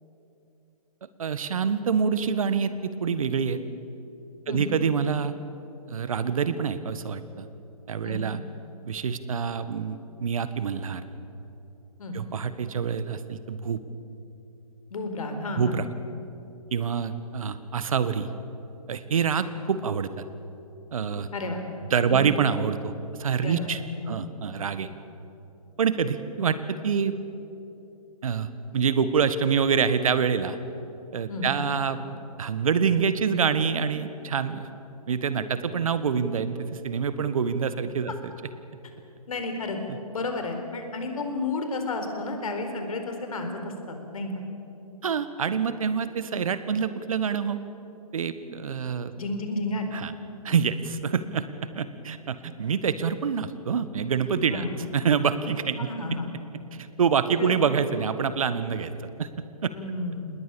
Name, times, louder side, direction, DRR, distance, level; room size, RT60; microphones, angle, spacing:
voice 1, 1.0-3.6 4.5-5.3 5.9-7.5 7.9-8.4 8.8-11.0 12.1-13.8 15.6-15.9 16.7-18.3 18.9-20.1 20.9-21.3 21.9-22.9 23.2-23.8 24.1-24.9 25.8-27.1 28.2-28.5 28.7-30.6 31.1-32.1 32.4-34.7 35.1-38.3 45.0-47.6 48.1-49.1 49.9-50.1 50.4-51.4 51.7-54.7 54.9-55.9 56.8-58.9 59.2-59.3 59.6-59.7, right 6 dB, 60° right, 12 dB, 1.6 m, -26 dB
voice 2, 14.9-15.7 21.3-21.6 22.0-22.2 23.4-23.7 24.0-24.2 31.3-31.5 39.3-39.8 40.1-44.3 49.2-49.9 54.5-54.8 55.8-56.3 57.4-57.6 59.7-60.3, left 2 dB, 65° left, 5 dB, 4.5 m, -31 dB
27.5 x 20.5 x 7.1 m, 2.9 s
figure-of-eight pair, 135°, 20 cm